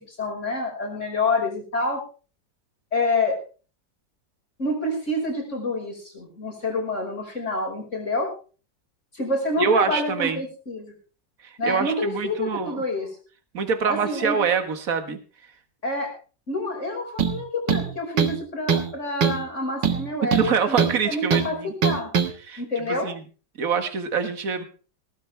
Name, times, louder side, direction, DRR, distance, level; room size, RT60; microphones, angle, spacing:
voice 1, 0.1-2.0 2.9-3.4 4.6-8.3 9.1-10.9 11.6-13.1 13.8-14.4 15.8-16.1 16.5-20.8 21.0-21.6 21.8-22.1 22.6-23.1, left 2 dB, 40° left, 1 dB, 5.9 m, -27 dB
voice 2, 9.6-10.4 11.4-12.8 13.5-15.2 20.2-21.7 22.4-22.6 22.9-23.2 23.6-24.6, right 6 dB, 50° right, 8 dB, 2.0 m, -25 dB
sound 1, 17.2-17.4 17.7-18.4 18.7-18.9 19.2-19.4 19.8-21.0 21.3-21.5 21.8-22.3, right 7 dB, 80° right, 2.3 m, -22 dB
19.0 x 14.5 x 3.4 m, 0.37 s
omnidirectional pair, 1.9 m